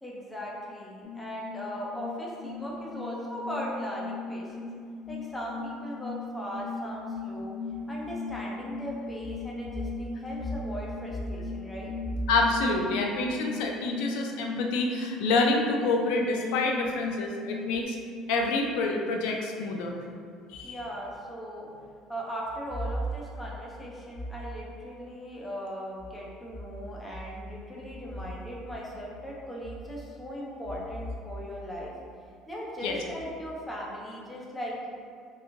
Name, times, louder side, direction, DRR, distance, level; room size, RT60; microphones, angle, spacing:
voice 1, 0.0-4.7 5.1-7.6 7.9-11.9 20.6-21.7 22.1-32.0 32.5-34.9, equal, 10° left, -4 dB, 0.4 m, -37 dB
sound 1, 1.0-17.8, left 4 dB, 55° left, 1.0 m, -38 dB
voice 2, 12.3-18.0 18.3-19.9 20.5-20.8 32.8-33.0, left 3 dB, 85° left, 1 dB, 0.3 m, -27 dB
2.9 x 2.5 x 2.4 m, 2.2 s
cardioid pair, 170°, 0 cm